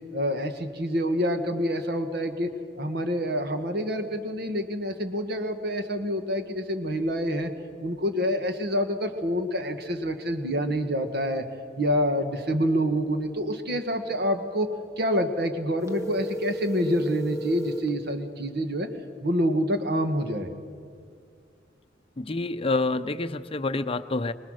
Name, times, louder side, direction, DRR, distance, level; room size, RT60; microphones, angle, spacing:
voice 1, 0.1-2.5 2.8-7.5 7.8-11.4 11.8-14.7 15.0-18.9 19.2-20.5, equal, 60° right, 7 dB, 1.7 m, -27 dB
sound 1, 15.8-17.9, right 1 dB, 15° right, 1.2 m, -33 dB
voice 2, 22.2-24.3, left 3 dB, 30° left, 10 dB, 0.6 m, -27 dB
24.0 x 20.0 x 6.5 m, 2.3 s
head